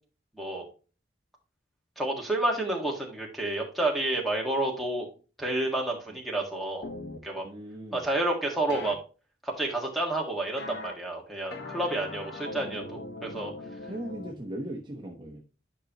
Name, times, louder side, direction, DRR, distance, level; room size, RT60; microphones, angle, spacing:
voice 1, 2.0-5.1 5.4-6.9 7.2-7.4 7.9-9.0 9.4-13.5, right 2 dB, ahead, 1 dB, 1.7 m, -30 dB
sound 1, 6.8-7.2 8.7-8.9 10.6-10.9 11.5-14.3, left 2 dB, 60° left, 1.0 m, -40 dB
voice 2, 7.3-8.0 13.8-15.4, right 1 dB, 25° right, -1 dB, 1.0 m, -38 dB
9.9 x 5.3 x 2.9 m, 0.34 s
head